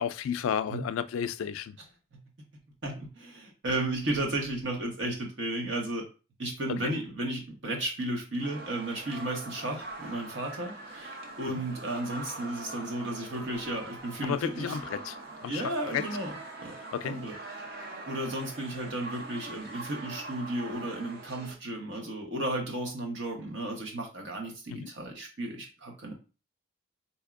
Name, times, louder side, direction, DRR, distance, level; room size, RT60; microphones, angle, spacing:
voice 1, 0.0-1.8 6.7-6.9 11.4-11.6 14.2-16.0 16.8-17.2 24.7-24.9, left 8 dB, 85° left, 0.3 m, -33 dB
voice 2, 2.8-6.0 6.4-14.7 15.5-16.3 16.6-16.8 17.0-17.3 18.1-26.1, right 1 dB, 65° right, 1.1 m, -34 dB
sound 1, 8.4-21.5, right 2 dB, 50° right, 0.6 m, -43 dB
4.2 x 2.7 x 2.4 m
head